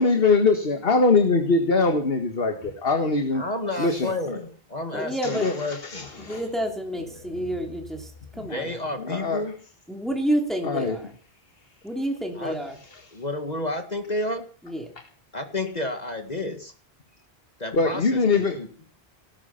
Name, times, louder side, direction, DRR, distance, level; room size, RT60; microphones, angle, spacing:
voice 1, 0.0-3.4 3.8-4.4 5.3-6.4 9.0-9.4 10.6-11.0 17.7-18.6, left 3 dB, 70° left, 6 dB, 1.9 m, -22 dB
voice 2, 3.3-6.1 8.3-9.5 12.4-12.6 13.1-14.4 15.3-16.7 17.6-18.7, left 2 dB, 40° left, 6 dB, 2.0 m, -31 dB
voice 3, 4.9-5.5 6.2-8.8 9.9-11.1 11.8-12.7 14.6-14.9, right 1 dB, ahead, 2 dB, 3.0 m, -29 dB
19.0 x 11.0 x 5.8 m, 0.42 s
omnidirectional pair, 1.0 m